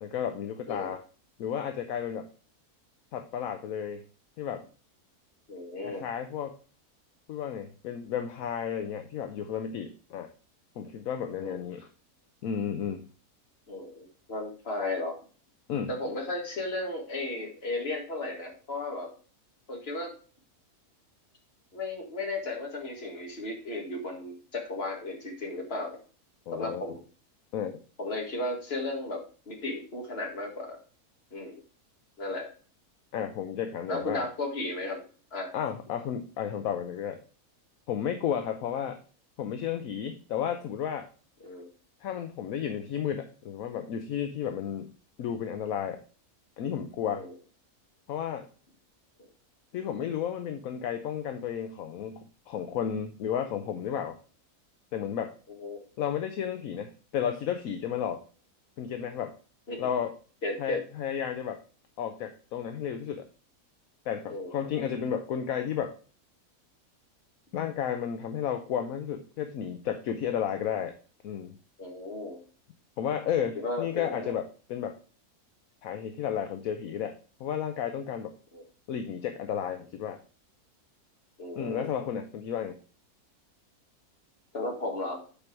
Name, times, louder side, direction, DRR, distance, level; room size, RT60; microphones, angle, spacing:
voice 1, 0.0-1.0 1.4-2.3 3.1-4.0 4.4-4.6 5.8-6.5 7.3-10.3 10.8-11.9 12.4-13.1 15.7-15.9 26.5-26.8 27.5-27.7 33.1-34.2 35.5-37.2 37.9-39.0 39.4-41.1 42.0-44.9 45.2-46.0 46.6-47.2 48.1-48.5 49.7-54.2 54.9-55.3 56.0-58.2 58.8-59.3 59.8-60.1 60.6-61.6 62.0-63.3 64.1-65.9 67.5-71.0 71.2-71.6 73.0-75.0 75.8-78.3 78.9-80.2 81.6-82.8, left 8 dB, 70° left, 7 dB, 1.1 m, -32 dB
voice 2, 5.5-6.0 11.4-11.6 13.7-15.2 15.9-19.1 19.7-20.1 21.7-26.0 26.5-27.0 28.0-30.8 31.3-31.6 32.2-32.5 33.9-35.0 35.3-35.5 41.4-41.7 47.1-47.3 49.2-49.3 55.6-55.8 59.7-59.8 60.4-60.8 64.3-64.5 71.8-72.4 73.4-74.4 78.5-78.6 81.4-81.9 84.5-85.2, left 2 dB, 40° left, 1 dB, 2.1 m, -35 dB
8.6 x 4.6 x 4.6 m, 0.38 s
omnidirectional pair, 1.6 m